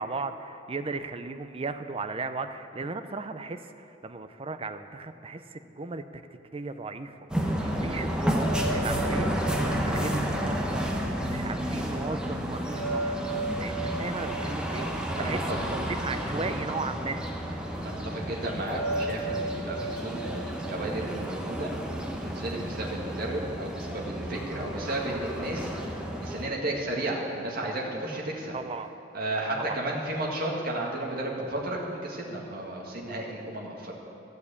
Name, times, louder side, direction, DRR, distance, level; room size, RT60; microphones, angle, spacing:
voice 1, 0.0-6.2 6.5-13.2 13.6-15.4 15.7-17.2 28.5-28.9 29.6-29.8, right 3 dB, 30° right, 9 dB, 0.5 m, -36 dB
sound 1, 7.3-26.5, equal, 5° right, 1.0 m, -31 dB
sound 2, 8.4-11.5 12.7-16.2 18.7-21.8, right 2 dB, 20° left, 1.8 m, -36 dB
voice 2, 15.2-15.6 17.8-21.7 22.2-25.7 26.2-28.5 29.1-33.9, right 1 dB, 55° right, -2 dB, 1.9 m, -33 dB
13.5 x 6.6 x 8.4 m, 2.7 s
head